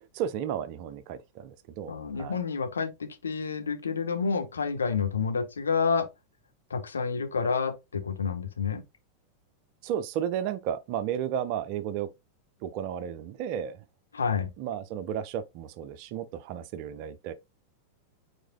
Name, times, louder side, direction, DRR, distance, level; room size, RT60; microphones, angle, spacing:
voice 1, 0.1-2.4 9.8-12.1 12.6-13.8 14.6-17.3, right 9 dB, 45° right, 0.5 m, -33 dB
voice 2, 1.9-6.1 6.7-8.8 14.1-14.5, left 5 dB, 70° left, 0.8 m, -29 dB
4.7 x 4.2 x 2.3 m
figure-of-eight pair, 90°, 0 cm